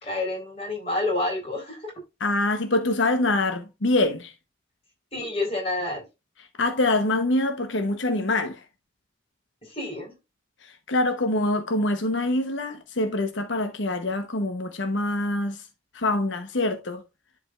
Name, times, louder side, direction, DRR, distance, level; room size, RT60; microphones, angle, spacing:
voice 1, 0.0-1.9 5.1-6.0 9.7-10.1, left 2 dB, 30° left, 4.0 m, -28 dB
voice 2, 2.2-4.3 6.6-8.6 10.6-15.6 15.9-17.0, left 2 dB, 80° left, 0.9 m, -25 dB
11.0 x 5.1 x 2.4 m
head